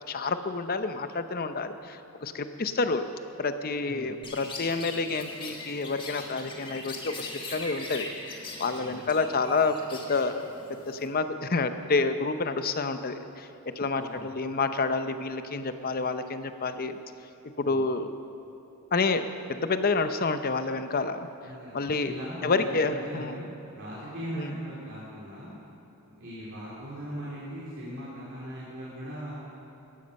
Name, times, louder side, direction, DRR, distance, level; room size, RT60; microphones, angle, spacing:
voice 1, 0.1-3.0 3.4-10.5 10.9-13.5 13.8-16.9 17.6-18.1 18.9-21.3 21.7-22.1 22.4-23.4 24.3-24.5, left 3 dB, 40° left, 9 dB, 0.7 m, -29 dB
Chirp tweet, 4.2-11.1, left 2 dB, 20° left, 1.5 m, -41 dB
voice 2, 13.9-14.3 17.6-17.8 21.4-23.5 23.7-25.5 26.2-29.3, equal, 55° right, -8 dB, 3.0 m, -39 dB
15.0 x 13.0 x 5.4 m, 2.9 s
head